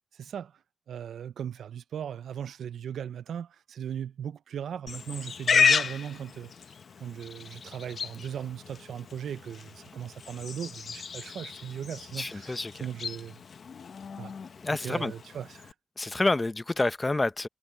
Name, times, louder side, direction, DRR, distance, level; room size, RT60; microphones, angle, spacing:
voice 1, 0.2-0.5 0.9-6.5 7.0-13.4 14.2-14.3 14.7-15.7, right 9 dB, 85° right, 0.5 m, -38 dB
Livestock farm animals working animals, 4.9-15.7, left 6 dB, 60° left, 0.9 m, -32 dB
voice 2, 12.1-12.9 14.6-15.1 16.0-17.5, left 2 dB, 25° left, 0.8 m, -28 dB
cardioid pair, 75°, 0 cm